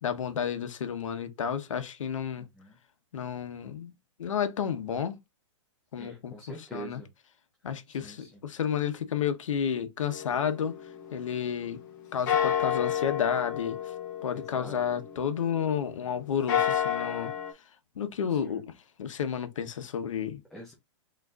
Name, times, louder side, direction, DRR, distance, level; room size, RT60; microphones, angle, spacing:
voice 1, 0.0-2.5 3.1-3.9 4.2-5.2 5.9-7.0 7.6-10.8 11.1-11.8 12.1-13.9 14.2-17.3 18.0-18.7 19.0-20.4, left 8 dB, 90° left, 1.1 m, -31 dB
voice 2, 2.4-2.8 6.0-7.1 7.9-8.4 14.3-14.8 18.3-18.6 20.5-20.7, right 2 dB, ahead, 0.6 m, -46 dB
sound 1, 10.1-11.9 12.3-15.8 16.3-17.5, left 9 dB, 40° left, 1.3 m, -31 dB
4.2 x 3.8 x 2.5 m
hypercardioid pair, 175°, 16 cm